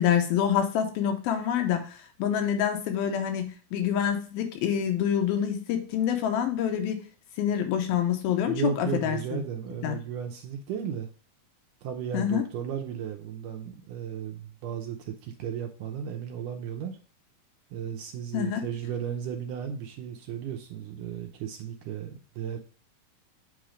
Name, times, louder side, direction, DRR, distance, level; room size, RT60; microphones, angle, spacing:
voice 1, 0.0-7.0 7.4-9.4 9.8-10.0 12.1-12.4 18.3-18.6, left 9 dB, 85° left, 5 dB, 2.8 m, -26 dB
voice 2, 8.5-11.1 11.8-17.0 17.7-22.6, right 8 dB, 75° right, 3 dB, 2.0 m, -35 dB
8.3 x 3.1 x 4.9 m, 0.38 s
omnidirectional pair, 4.2 m